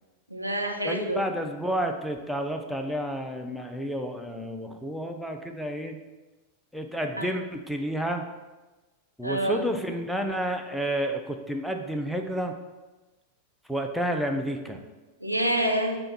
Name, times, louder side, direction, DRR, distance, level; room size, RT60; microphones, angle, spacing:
voice 1, 0.3-1.2 7.2-7.3 9.2-9.6 15.2-16.0, right 1 dB, 85° right, 2 dB, 0.5 m, -27 dB
voice 2, 0.8-6.0 6.7-8.2 9.2-12.5 13.7-14.8, equal, ahead, 3 dB, 0.4 m, -30 dB
5.4 x 2.3 x 4.1 m, 1.2 s
figure-of-eight pair, 90°, 0 cm